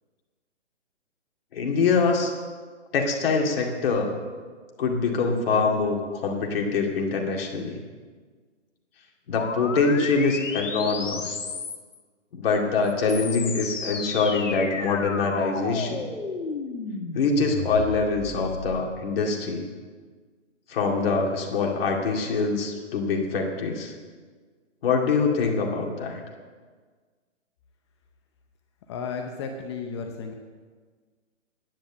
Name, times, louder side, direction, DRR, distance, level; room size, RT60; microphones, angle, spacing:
voice 1, 1.5-2.3 2.9-4.1 4.8-7.8 9.3-11.4 12.3-16.0 17.1-19.7 20.7-23.9 24.8-26.2, left 4 dB, 50° left, 1 dB, 2.3 m, -24 dB
sound 1, 9.3-12.0 12.8-18.8, left 4 dB, 80° left, 1.6 m, -33 dB
voice 2, 28.9-30.3, left 5 dB, 25° left, 4 dB, 0.6 m, -33 dB
10.5 x 9.3 x 7.2 m, 1.5 s
hypercardioid pair, 145°, 37 cm